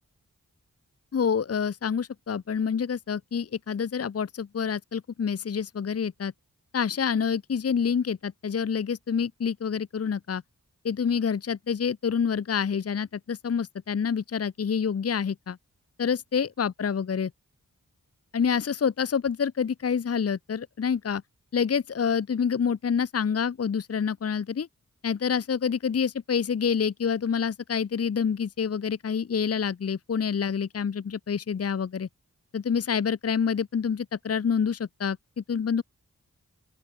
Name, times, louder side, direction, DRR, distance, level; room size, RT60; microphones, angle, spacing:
voice 1, 1.1-6.3 6.7-10.4 10.8-15.6 16.0-17.3 18.3-21.2 21.5-24.7 25.0-32.1 32.5-35.8, left 6 dB, 45° left, 0.7 m, -27 dB
open air
wide cardioid pair, 75°, 32 cm